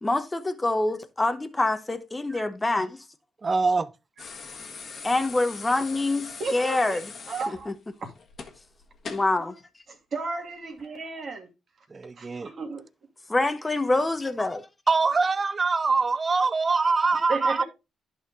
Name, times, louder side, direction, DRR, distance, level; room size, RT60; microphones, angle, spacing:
voice 1, 0.0-3.0 5.0-7.1 7.5-7.7 9.1-9.6 13.3-14.7, left 2 dB, 15° left, 1.0 m, -26 dB
voice 2, 3.4-3.9 11.9-12.5 14.9-17.6, right 4 dB, 30° right, 0.6 m, -23 dB
sound 1, 4.2-9.4 10.7-10.9, left 5 dB, 50° left, 1.5 m, -41 dB
voice 3, 6.4-7.0 7.3-7.7 8.0-8.1 9.9-11.5 12.2-12.8 17.3-17.6, right 3 dB, 50° right, 2.6 m, -33 dB
11.0 x 4.4 x 3.7 m
cardioid pair, 90°, 0 cm